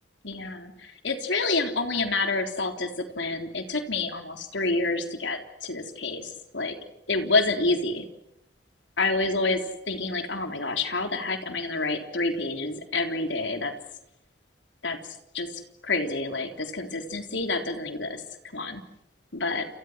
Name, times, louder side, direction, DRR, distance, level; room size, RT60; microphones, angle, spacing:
voice 1, 0.2-6.7 7.1-8.0 9.0-13.7 14.8-15.0 15.3-18.2 18.5-18.8 19.3-19.7, left 3 dB, 80° left, 5 dB, 3.8 m, -28 dB
29.5 x 29.0 x 6.4 m, 0.79 s
head